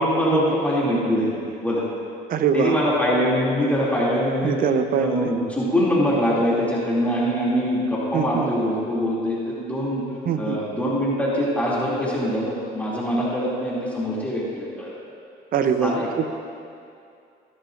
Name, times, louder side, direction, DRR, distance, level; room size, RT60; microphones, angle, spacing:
voice 1, 0.0-1.4 1.6-1.8 2.5-4.6 5.0-10.0 10.4-14.9 15.7-16.1, equal, 10° left, -7 dB, 2.6 m, -23 dB
voice 2, 2.3-2.8 4.4-5.3 8.1-8.5 10.3-10.6 15.5-16.3, right 7 dB, 55° right, 9 dB, 0.7 m, -23 dB
15.0 x 12.5 x 2.5 m, 2.4 s
cardioid pair, 110°, 17 cm